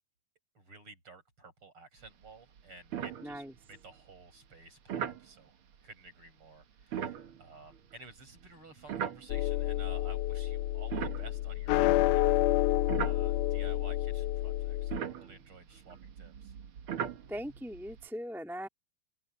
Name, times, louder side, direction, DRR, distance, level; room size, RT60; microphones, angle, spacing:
voice 1, 0.5-3.4 3.7-5.6 5.8-12.6 13.0-16.5, right 3 dB, 35° right, 8.2 m, -53 dB
sound 1, 2.0-2.3 2.6-2.7 2.9-3.8 4.9-5.3 6.8-9.7 10.3-12.1 12.6-18.1, right 8 dB, 65° right, 1.3 m, -40 dB
voice 2, 3.2-3.5 17.3-18.7, equal, ahead, 2.4 m, -40 dB
sound 2, 9.3-15.0, left 15 dB, 85° left, 1.8 m, -29 dB
open air
omnidirectional pair, 4.3 m